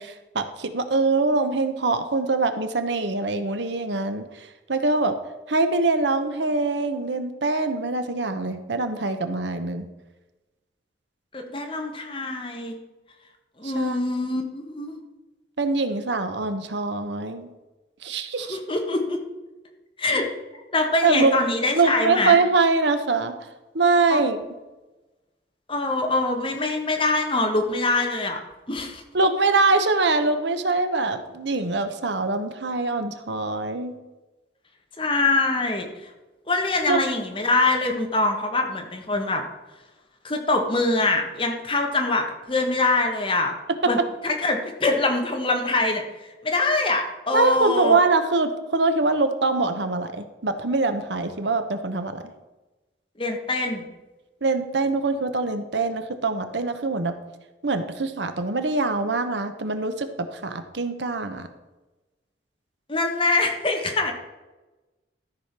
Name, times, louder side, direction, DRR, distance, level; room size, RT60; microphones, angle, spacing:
voice 1, 0.0-4.2 4.7-5.1 5.5-9.9 13.6-14.0 15.6-17.5 18.0-18.6 21.0-21.3 21.8-23.4 23.7-24.4 29.1-34.0 36.9-37.0 47.3-52.2 54.4-57.1 57.6-61.5, right 3 dB, 75° right, 9 dB, 0.9 m, -23 dB
voice 2, 11.3-12.7 13.6-15.0 18.5-19.2 20.0-20.3 20.7-22.4 24.1-24.2 25.7-28.4 28.7-29.0 35.0-35.9 36.5-39.4 40.2-43.5 43.9-44.0 44.2-46.0 46.4-48.0 53.2-53.8 62.9-64.1, left 2 dB, 30° left, 3 dB, 1.4 m, -24 dB
13.5 x 5.0 x 5.9 m, 1.1 s
head